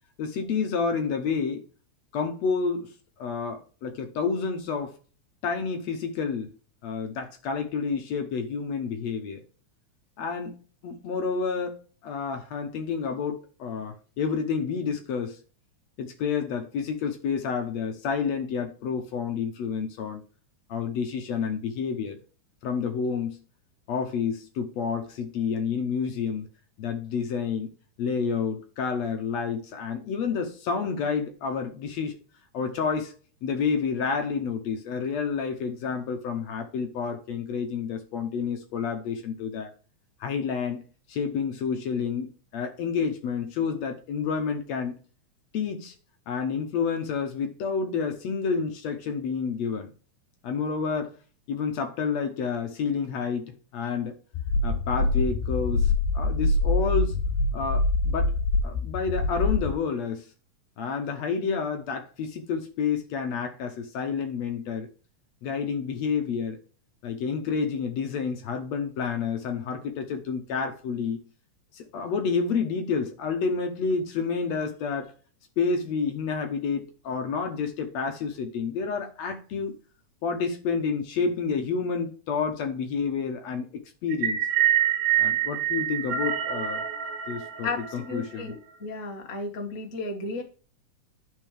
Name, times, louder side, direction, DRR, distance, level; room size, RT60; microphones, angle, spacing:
voice 1, 0.2-1.6 2.1-2.9 3.2-4.9 5.4-6.5 6.8-9.4 10.2-15.4 16.0-20.2 20.7-22.2 22.6-23.4 23.9-26.5 26.8-27.7 28.0-32.2 32.5-33.1 33.4-39.7 40.2-40.8 41.1-45.0 45.5-46.0 46.3-49.9 50.4-51.1 51.5-54.2 54.6-57.2 57.5-58.3 58.6-60.3 60.8-64.9 65.4-66.6 67.0-71.2 71.7-75.1 75.6-79.7 80.2-83.7 84.0-84.4 85.2-86.8 87.3-88.5, left 5 dB, 70° left, 1.9 m, -29 dB
sound 1, 54.3-59.7, left 3 dB, 90° left, 2.3 m, -25 dB
sound 2, 84.1-88.4, right 11 dB, 85° right, 2.7 m, -26 dB
voice 2, 88.1-90.4, left 3 dB, 40° left, 1.1 m, -33 dB
11.0 x 4.6 x 3.2 m
omnidirectional pair, 3.6 m